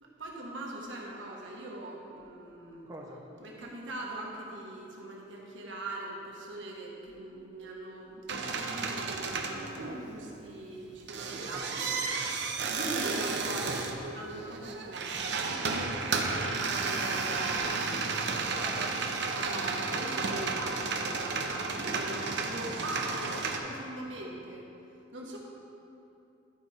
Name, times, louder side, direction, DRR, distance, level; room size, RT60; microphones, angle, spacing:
voice 1, 0.0-2.9 3.4-11.9 12.2-12.4 12.7-18.6 19.3-24.7 25.1-25.4, right 1 dB, 80° right, -2 dB, 1.3 m, -41 dB
voice 2, 2.9-3.2 11.5-11.7 18.5-19.1 22.7-22.9, right 1 dB, 20° right, -2 dB, 0.7 m, -45 dB
sound 1, 8.3-10.3 10.8-23.6, right 4 dB, 65° right, 0.7 m, -32 dB
11.0 x 4.9 x 4.3 m, 2.8 s
head